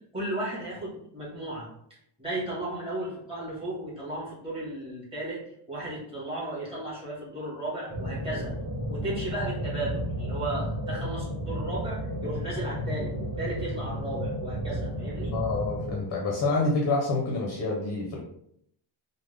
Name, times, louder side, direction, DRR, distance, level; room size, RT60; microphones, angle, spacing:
voice 1, 0.1-1.7 2.2-5.4 5.7-8.5 8.9-15.3, right 1 dB, 10° right, -8 dB, 1.3 m, -35 dB
sound 1, 7.9-15.9, equal, 30° right, 1.1 m, -32 dB
voice 2, 15.3-18.2, left 3 dB, 35° left, -2 dB, 0.6 m, -27 dB
3.5 x 2.1 x 3.2 m, 0.71 s
cardioid pair, 180°, 49 cm